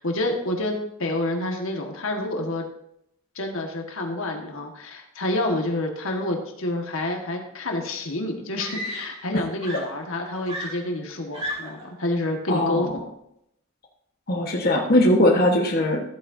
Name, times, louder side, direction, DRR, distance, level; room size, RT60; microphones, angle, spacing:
voice 1, 0.0-2.6 3.3-13.0, left 1 dB, 75° left, 2 dB, 1.6 m, -28 dB
Screaming, 8.6-9.3 9.6-11.9 12.9-13.2, equal, 25° right, 2.4 m, -35 dB
voice 2, 12.5-12.9 14.3-16.0, left 1 dB, 45° left, -1 dB, 1.3 m, -20 dB
14.5 x 8.7 x 2.7 m, 0.79 s
head